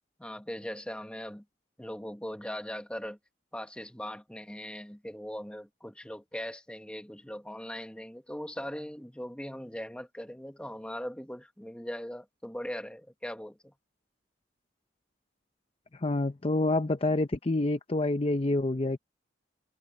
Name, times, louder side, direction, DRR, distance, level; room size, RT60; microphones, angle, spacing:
voice 1, 0.2-1.4 1.8-3.2 3.5-13.7, equal, 5° left, 1.4 m, -40 dB
voice 2, 16.0-19.0, left 2 dB, 30° left, 0.6 m, -27 dB
head